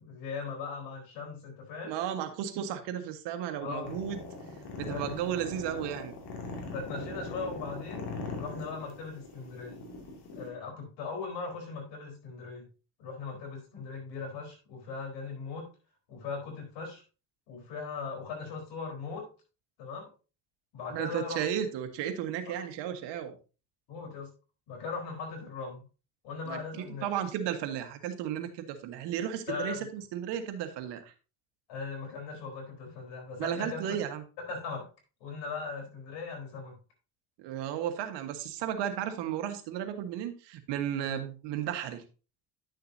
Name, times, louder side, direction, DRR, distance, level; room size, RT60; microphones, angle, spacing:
voice 1, 0.0-1.9 3.6-4.0 4.8-5.2 6.7-8.0 8.4-9.8 10.4-12.6 13.0-15.7 16.1-17.0 17.5-19.3 19.8-20.1 20.7-21.5 22.5-22.6 23.9-24.3 24.7-25.8 26.2-27.1 29.5-29.9 31.7-33.9 34.5-34.9 35.2-36.8 41.0-41.2, left 4 dB, 85° left, 2 dB, 4.2 m, -39 dB
voice 2, 1.8-4.2 4.8-6.1 20.9-23.3 26.5-26.6 27.0-31.1 33.4-34.2 37.4-42.0, right 10 dB, 80° right, 7 dB, 1.5 m, -34 dB
sound 1, 3.8-10.5, left 3 dB, 65° left, 2.7 m, -40 dB
10.5 x 6.6 x 2.7 m, 0.33 s
cardioid pair, 100°, 41 cm